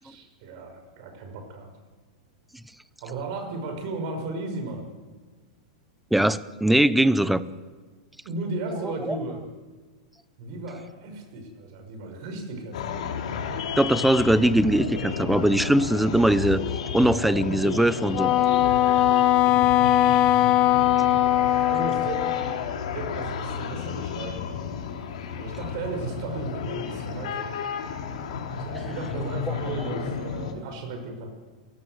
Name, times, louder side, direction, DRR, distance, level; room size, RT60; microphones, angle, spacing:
voice 1, 0.0-1.7 3.0-4.9 8.2-9.4 10.4-13.0 19.6-20.0 21.7-22.6 22.9-24.7 25.4-27.6 28.6-31.3, right 3 dB, 45° right, 5 dB, 6.1 m, -35 dB
voice 2, 6.1-7.4 9.1-9.2 13.8-16.6 16.9-18.3 19.5-19.6 21.0-21.1, right 1 dB, ahead, 16 dB, 0.7 m, -21 dB
sound 1, 12.7-30.5, left 6 dB, 65° left, 3.8 m, -32 dB
Wind instrument woodwind instrument, 18.1-22.6, left 13 dB, 25° left, 0.9 m, -20 dB
29.0 x 17.5 x 8.0 m, 1.4 s
supercardioid pair, 160°, 4 cm